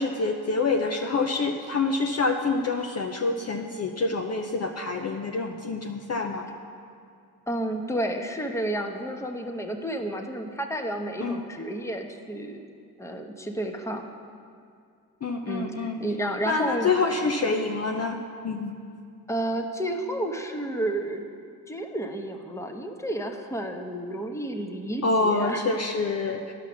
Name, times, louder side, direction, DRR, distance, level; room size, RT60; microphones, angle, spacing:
voice 1, 0.0-6.5 11.2-11.4 15.2-16.0 16.5-18.2 18.4-18.8 25.0-26.5, left 3 dB, 35° left, 3 dB, 0.8 m, -26 dB
voice 2, 7.5-12.6 13.0-14.1 15.4-17.3 19.3-21.2 21.7-25.6, right 1 dB, 5° left, 3 dB, 1.1 m, -31 dB
10.5 x 5.8 x 6.2 m, 2.4 s
supercardioid pair, 55°, 42 cm